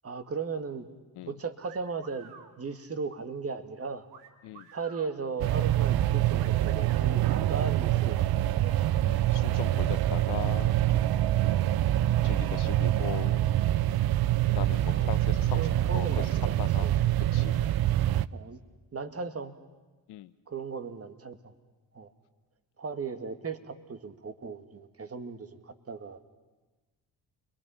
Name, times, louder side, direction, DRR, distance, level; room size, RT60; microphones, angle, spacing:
voice 1, 0.0-0.9 1.3-4.1 4.7-8.8 13.7-13.9 14.9-15.2 15.6-16.9 17.3-17.5 18.3-18.6 18.9-19.6 20.5-21.5 21.9-22.1 22.8-26.3, right 4 dB, 35° right, 8 dB, 2.1 m, -37 dB
sound 1, 1.6-2.5 4.1-5.1 6.4-7.1, right 7 dB, 90° right, 1.8 m, -50 dB
sound 2, 5.4-18.3, right 13 dB, 65° right, 0.7 m, -25 dB
voice 2, 9.0-11.0 12.2-13.5 14.5-16.9 17.3-17.6 20.1-20.3, left 15 dB, 75° left, 14 dB, 0.8 m, -39 dB
29.5 x 22.5 x 5.7 m, 1.2 s
supercardioid pair, 55°, 40 cm